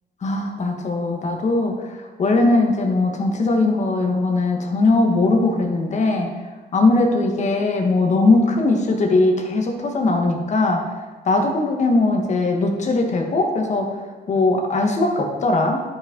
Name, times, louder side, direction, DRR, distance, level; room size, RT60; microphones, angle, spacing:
voice 1, 0.2-1.7 2.2-6.3 6.7-10.8 11.2-13.9 14.3-15.8, left 2 dB, 40° left, 2 dB, 1.3 m, -19 dB
12.0 x 5.3 x 3.8 m, 1.3 s
cardioid pair, 125°, 18 cm